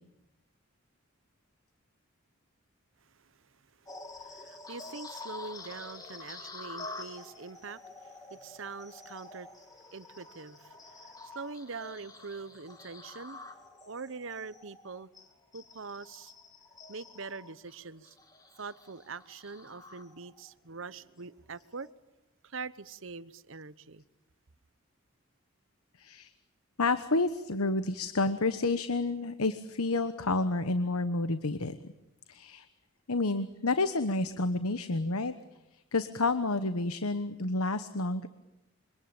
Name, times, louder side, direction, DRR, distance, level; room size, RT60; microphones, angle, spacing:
sound 1, 3.8-20.5 21.0-21.2 21.7-21.9, left 3 dB, 15° left, 2.5 m, -48 dB
voice 1, 4.1-15.1 15.5-16.3 16.9-18.2 18.6-21.9 22.4-24.0, right 4 dB, 60° right, 0.9 m, -44 dB
voice 2, 26.0-26.3 26.8-31.9 32.3-32.6 33.1-35.3 35.9-38.3, left 3 dB, 90° left, 1.1 m, -29 dB
26.5 x 24.5 x 9.0 m
head